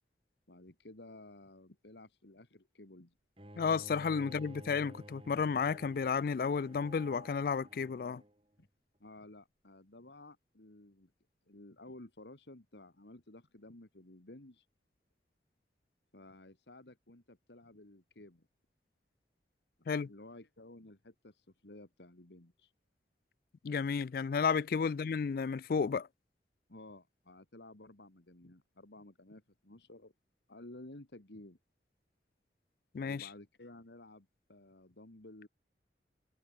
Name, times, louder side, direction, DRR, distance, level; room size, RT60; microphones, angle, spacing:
voice 1, 0.5-3.1 4.2-4.3 8.6-8.7 9.0-11.1 11.5-14.7 16.1-18.5 19.8-22.7 24.8-24.9 26.7-30.1 30.5-31.6 33.0-35.5, left 2 dB, 75° left, 2.2 m, -54 dB
Bowed string instrument, 3.4-8.4, right 1 dB, 30° right, 3.8 m, -53 dB
voice 2, 3.6-8.2 19.9-20.1 23.6-26.1 32.9-33.3, left 5 dB, 55° left, 0.3 m, -32 dB
head